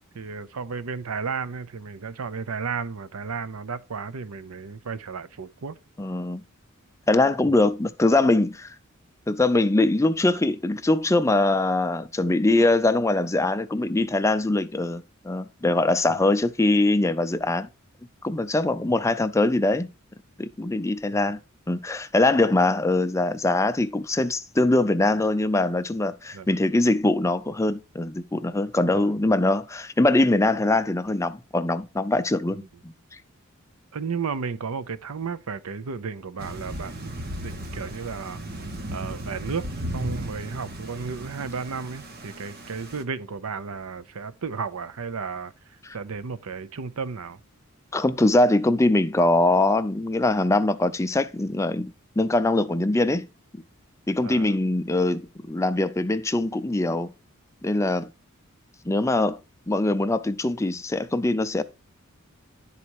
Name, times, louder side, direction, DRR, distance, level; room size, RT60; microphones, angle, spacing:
voice 1, 0.1-5.8 7.5-7.6 16.1-16.3 21.1-21.3 26.3-26.6 28.9-29.1 32.5-32.7 33.9-37.1 37.4-38.4 38.9-39.7 39.9-45.5 45.9-47.4 54.2-54.6, right 5 dB, 90° right, 0.7 m, -33 dB
voice 2, 6.0-6.4 7.1-8.7 9.3-17.7 18.2-19.9 20.4-21.4 21.7-32.9 47.9-51.9 52.2-53.3 53.5-53.6 54.1-57.1 57.6-58.1 58.9-59.4 59.7-61.6, left 2 dB, 15° left, 0.5 m, -22 dB
Thunder / Rain, 36.4-43.0, right 1 dB, 45° right, 1.1 m, -36 dB
11.0 x 4.2 x 4.6 m
head